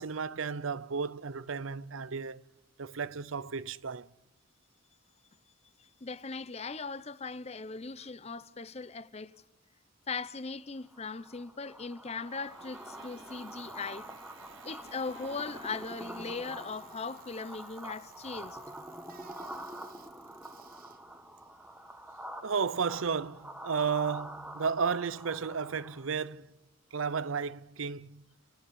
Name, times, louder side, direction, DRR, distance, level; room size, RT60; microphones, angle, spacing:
voice 1, 0.0-2.4 2.8-4.1 22.4-26.5 26.9-28.2, right 6 dB, 90° right, 0.7 m, -33 dB
voice 2, 5.8-9.4 10.1-14.1 14.6-18.6, left 4 dB, 30° left, 0.7 m, -39 dB
sound 1, 10.9-26.2, right 1 dB, 5° right, 1.4 m, -46 dB
Bicycle, 12.2-22.3, right 7 dB, 45° right, 1.3 m, -59 dB
sound 2, 12.3-17.8, right 5 dB, 70° right, 1.4 m, -58 dB
29.5 x 12.5 x 10.0 m
head